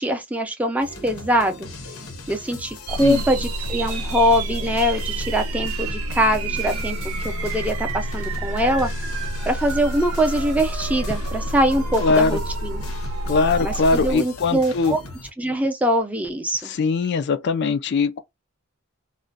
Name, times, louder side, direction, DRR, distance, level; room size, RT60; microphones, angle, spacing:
voice 1, 0.0-1.7 2.3-8.9 9.5-12.8 13.6-15.0 15.4-16.7, equal, 5° right, 0.5 m, -23 dB
sound 1, 0.8-15.3, left 3 dB, 75° left, 0.8 m, -39 dB
sound 2, 2.9-14.2, right 1 dB, 80° right, 0.6 m, -28 dB
voice 2, 12.0-12.4 13.3-15.0 16.6-18.2, left 4 dB, 55° left, 0.3 m, -21 dB
2.4 x 2.1 x 3.9 m
head